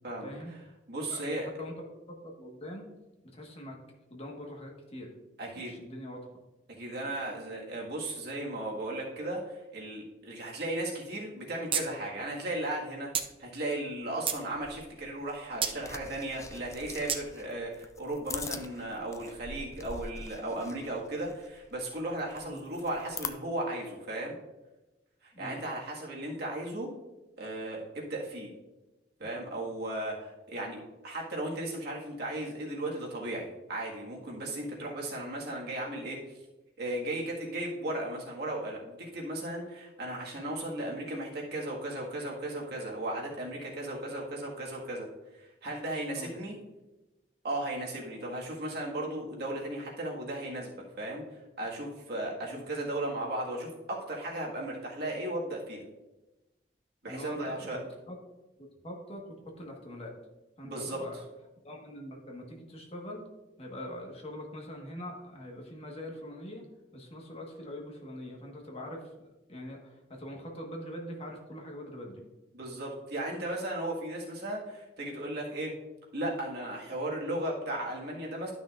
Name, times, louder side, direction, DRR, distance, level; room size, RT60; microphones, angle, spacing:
voice 1, 0.2-0.5 1.1-1.7 2.1-2.9 3.2-3.8 4.1-5.1 5.6-6.3 22.4-22.6 25.3-25.6 46.2-46.3 52.5-52.6 57.1-58.2 58.6-60.2 60.6-61.2 61.6-63.2 63.6-66.6 66.9-72.2, left 1 dB, 35° left, 0 dB, 1.4 m, -43 dB
voice 2, 0.9-1.5 5.4-5.7 6.7-13.1 13.4-24.3 25.2-26.9 27.4-28.5 29.2-36.4 36.8-45.1 45.3-46.6 47.4-51.2 51.6-55.8 57.0-57.8 60.6-61.0 72.5-75.7 76.1-78.5, right 1 dB, 65° right, -2 dB, 1.8 m, -36 dB
sound 1, 11.7-11.9 12.2-12.3 13.1-13.3 13.9-14.4 15.6-15.8 17.1-17.2, right 7 dB, 30° right, 0.6 m, -30 dB
sound 2, 14.5-23.3, left 4 dB, 15° left, 0.4 m, -44 dB
12.0 x 6.0 x 2.5 m, 1.1 s
head